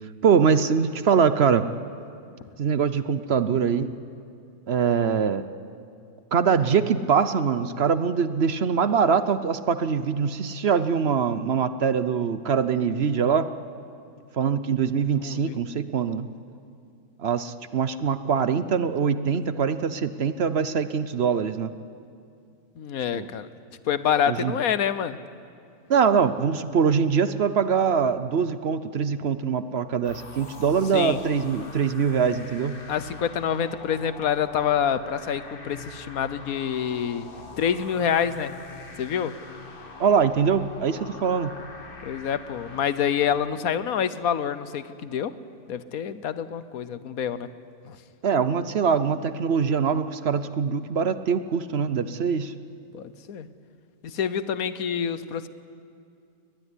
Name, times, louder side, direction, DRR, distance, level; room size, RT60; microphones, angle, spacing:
voice 1, 0.2-1.7 2.6-3.9 4.7-5.4 6.3-13.5 14.3-16.3 17.2-21.7 23.1-23.3 24.3-24.5 25.9-32.8 40.0-41.5 48.2-52.5, right 6 dB, 55° right, 12 dB, 0.8 m, -23 dB
voice 2, 15.2-15.5 22.8-23.5 23.9-25.2 30.9-31.2 32.9-37.3 37.6-38.5 39.0-39.3 42.0-45.3 45.7-47.5 47.9-48.0 52.9-53.5 54.0-55.5, left 8 dB, 65° left, 14 dB, 1.3 m, -27 dB
sound 1, 30.0-43.5, left 3 dB, 35° left, 1.8 m, -43 dB
22.0 x 20.0 x 9.9 m, 2.4 s
omnidirectional pair, 1.7 m